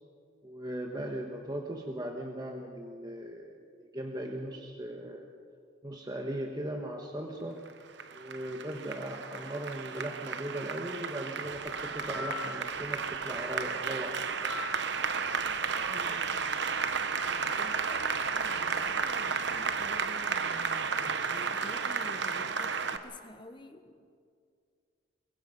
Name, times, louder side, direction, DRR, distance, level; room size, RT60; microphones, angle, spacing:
voice 1, 0.4-5.3 5.8-7.6 8.1-14.2, right 1 dB, 20° right, 2 dB, 1.2 m, -38 dB
Applause, 7.7-23.0, right 5 dB, 60° right, 1.0 m, -33 dB
sound 1, 11.5-20.7, left 3 dB, 75° right, 2.6 m, -46 dB
voice 2, 15.9-16.4 17.4-24.1, left 1 dB, 25° left, 7 dB, 1.2 m, -49 dB
23.5 x 21.5 x 5.4 m, 2.2 s
head